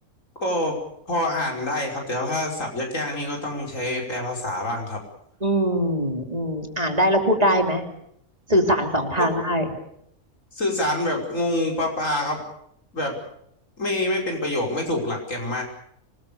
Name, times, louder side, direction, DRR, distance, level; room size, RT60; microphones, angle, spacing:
voice 1, 0.4-0.8 1.1-5.0 9.2-9.3 10.5-12.4 12.9-13.2 13.8-15.6, left 1 dB, 65° left, 1 dB, 5.8 m, -26 dB
voice 2, 5.4-7.8 8.5-9.6, equal, 25° right, 4 dB, 3.1 m, -22 dB
26.0 x 20.0 x 7.0 m, 0.75 s
omnidirectional pair, 1.5 m